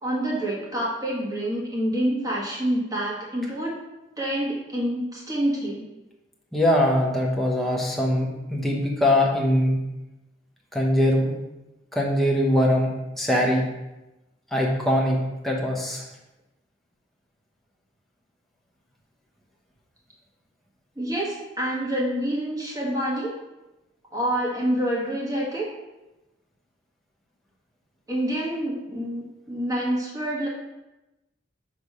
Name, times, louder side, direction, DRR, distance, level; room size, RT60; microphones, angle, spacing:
voice 1, 0.0-3.8 4.2-5.9 21.0-23.4 24.1-25.7 28.1-30.5, right 1 dB, 20° right, -4 dB, 1.5 m, -27 dB
voice 2, 6.5-9.8 10.7-11.3 11.9-12.9 13.2-13.6 14.5-15.2 15.4-16.0, left 1 dB, ahead, -3 dB, 1.0 m, -22 dB
6.0 x 3.4 x 5.4 m, 1.0 s
head